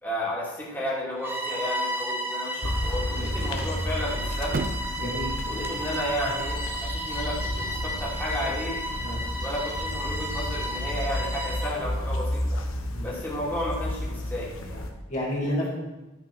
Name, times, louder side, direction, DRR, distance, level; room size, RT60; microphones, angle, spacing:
voice 1, 0.0-4.6 5.5-8.8 9.4-12.6 13.0-14.9, left 1 dB, 10° left, -6 dB, 2.7 m, -33 dB
Bowed string instrument, 1.2-11.8, equal, 10° right, 1.2 m, -33 dB
sound 1, 1.4-2.1 2.4-2.5 4.4-5.2 6.8-7.7, right 3 dB, 45° right, 0.5 m, -36 dB
sound 2, 2.6-14.9, left 1 dB, 90° left, 1.4 m, -32 dB
voice 2, 3.1-3.5 5.0-5.3 9.0-9.2 12.9-13.2 15.1-15.7, left 1 dB, 35° left, -5 dB, 2.5 m, -31 dB
11.5 x 5.9 x 6.2 m, 1.1 s
head